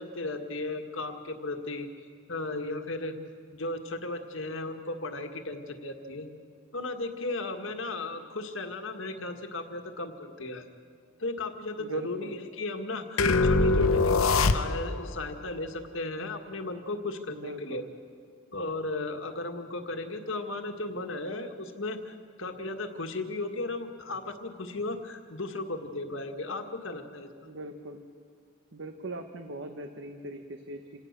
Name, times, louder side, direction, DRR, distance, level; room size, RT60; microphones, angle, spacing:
voice 1, 0.0-1.9 2.3-3.1 3.5-6.3 6.7-10.6 11.2-17.8 18.5-27.3, left 2 dB, 65° left, 6 dB, 1.7 m, -35 dB
voice 2, 11.8-12.3 17.3-17.9 27.4-28.0 28.7-31.0, right 1 dB, 60° right, 6 dB, 1.1 m, -41 dB
sound 1, 13.2-15.1, left 3 dB, 90° left, 0.8 m, -23 dB
27.5 x 17.5 x 6.7 m, 2.1 s
head